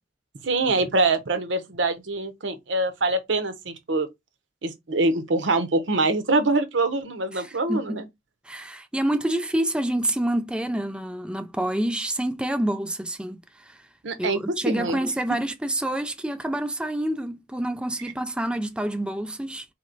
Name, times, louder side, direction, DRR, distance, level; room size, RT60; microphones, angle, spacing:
voice 1, 0.4-4.1 4.6-8.1 14.0-14.4 14.7-15.0, right 2 dB, 75° right, 0.9 m, -24 dB
voice 2, 7.3-8.0 8.5-13.8 14.2-19.7, right 1 dB, 5° right, 0.3 m, -27 dB
4.2 x 2.9 x 3.9 m
head